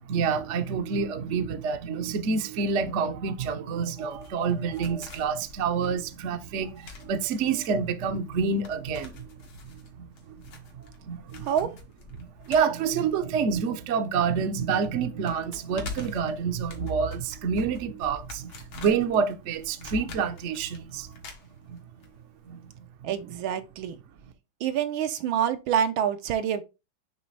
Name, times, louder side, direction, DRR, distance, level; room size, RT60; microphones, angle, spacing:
voice 1, 0.0-9.4 9.6-11.5 12.2-21.1 21.7-21.8 22.5-22.7 23.0-23.1, right 6 dB, 60° right, 0.8 m, -28 dB
sound 1, 4.0-14.1 14.4-14.5 14.8-22.1 22.3-22.4, left 4 dB, 85° left, 2.2 m, -45 dB
voice 2, 11.4-11.7 23.0-24.0 24.6-26.6, right 9 dB, 80° right, 1.5 m, -27 dB
9.4 x 3.4 x 3.2 m
omnidirectional pair, 2.2 m